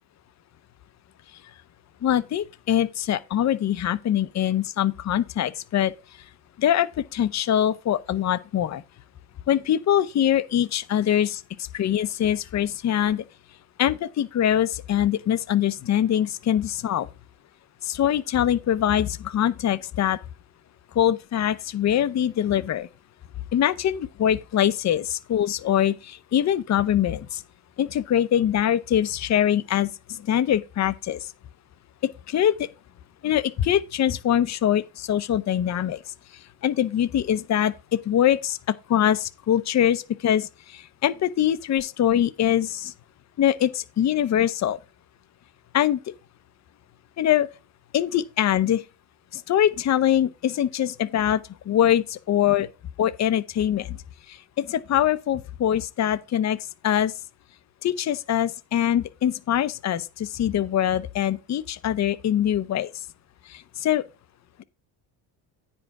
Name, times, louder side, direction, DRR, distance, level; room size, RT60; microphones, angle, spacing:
voice 1, 2.0-5.9 6.6-8.8 9.5-11.4 11.7-13.2 13.8-17.1 17.8-20.2 20.9-22.9 23.5-27.4 27.8-31.3 32.3-32.7 33.2-36.0 36.6-37.7 38.0-42.9 43.4-44.8 45.7-46.0 47.2-47.5 47.9-48.8 49.3-51.4 51.7-52.7 53.0-54.0 54.3-56.6 56.8-57.1 57.8-62.9 63.5-64.0, left 10 dB, 35° left, 0.6 m, -23 dB
9.6 x 5.2 x 4.7 m
cardioid pair, 105°, 49 cm